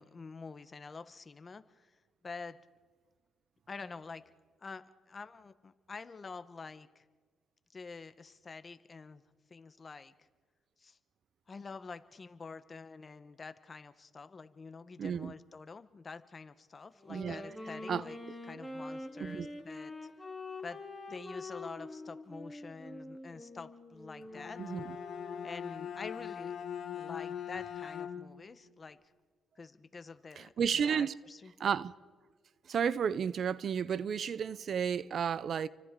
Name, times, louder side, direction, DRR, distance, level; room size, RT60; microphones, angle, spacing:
voice 1, 0.0-1.9 2.2-2.6 3.7-4.2 4.6-7.0 7.7-9.2 9.5-10.1 10.8-11.0 11.5-18.2 18.5-19.9 20.6-20.8 21.1-24.6 25.4-26.5 26.9-29.0 29.6-31.5, left 4 dB, 35° left, 1.0 m, -47 dB
voice 2, 15.0-15.3 17.1-17.4 17.9-18.0 19.2-19.5 24.6-25.0 30.4-31.1 31.6-31.9 32.7-35.7, right 7 dB, 55° right, 0.6 m, -32 dB
Wind instrument woodwind instrument, 16.9-25.6, left 2 dB, 5° left, 3.1 m, -45 dB
Bowed string instrument, 24.2-28.5, left 8 dB, 60° left, 1.9 m, -41 dB
30.0 x 24.5 x 3.8 m
cardioid pair, 90°, 0 cm